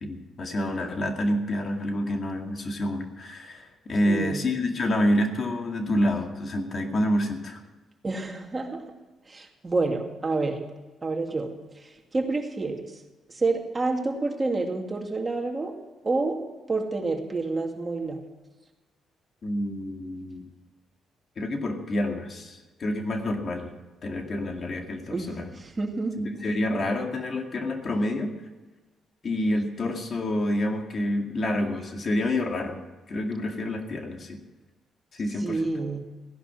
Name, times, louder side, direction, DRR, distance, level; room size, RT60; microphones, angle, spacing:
voice 1, 0.0-7.6 19.4-20.5 21.4-23.7 24.0-25.5 26.2-28.3 29.2-32.8 33.1-34.4 35.1-35.7, left 1 dB, 45° left, 4 dB, 2.3 m, -28 dB
voice 2, 4.0-4.4 8.0-8.8 9.3-10.6 11.0-11.5 12.1-12.8 13.4-15.7 16.0-16.4 16.7-18.2 25.1-26.2 35.4-36.0, right 3 dB, 25° right, 2 dB, 2.5 m, -28 dB
16.0 x 11.0 x 6.1 m, 1.2 s
cardioid pair, 90°, 0 cm